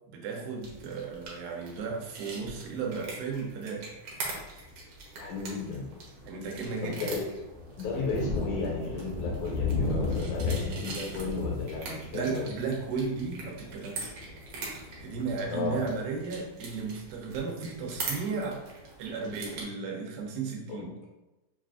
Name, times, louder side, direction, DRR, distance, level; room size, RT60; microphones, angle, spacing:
voice 1, 0.1-3.9 6.3-7.0 12.1-14.2 15.0-18.7 19.0-20.9, right 4 dB, 85° right, 0 dB, 2.3 m, -34 dB
sound 1, 0.6-19.6, right 3 dB, 70° right, 1.5 m, -43 dB
Thunder, 4.3-4.6 5.1-5.3 5.7-16.3, left 3 dB, 60° left, 1.0 m, -35 dB
voice 2, 5.2-5.9 6.8-7.2 7.8-12.5 15.5-15.8 20.7-20.8, left 4 dB, 80° left, -2 dB, 1.9 m, -34 dB
6.0 x 2.4 x 2.4 m, 1.0 s
omnidirectional pair, 3.8 m